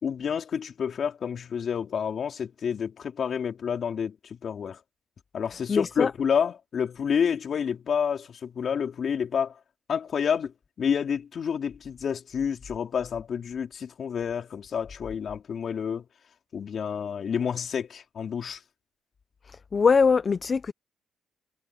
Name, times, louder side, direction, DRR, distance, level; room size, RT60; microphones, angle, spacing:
voice 1, 0.0-4.8 5.3-9.6 9.9-16.1 16.5-18.6, left 7 dB, 55° left, 3.9 m, -29 dB
voice 2, 5.7-6.1 19.5-20.7, left 5 dB, 40° left, 0.8 m, -22 dB
cardioid pair, 90°, 0 cm